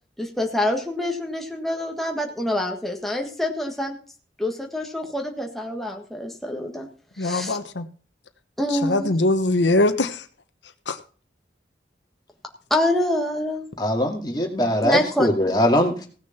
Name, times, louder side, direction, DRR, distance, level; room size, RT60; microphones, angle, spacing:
voice 1, 0.2-3.9 4.4-6.9 7.2-7.6 8.6-9.2 12.7-13.6 14.8-15.3, left 1 dB, ahead, 1 dB, 1.5 m, -26 dB
voice 2, 7.2-7.9 8.9-10.2 10.9-11.0, left 2 dB, 90° left, 9 dB, 1.1 m, -21 dB
voice 3, 13.8-16.0, left 1 dB, 25° left, 1 dB, 2.4 m, -21 dB
16.5 x 6.6 x 5.9 m, 0.40 s
head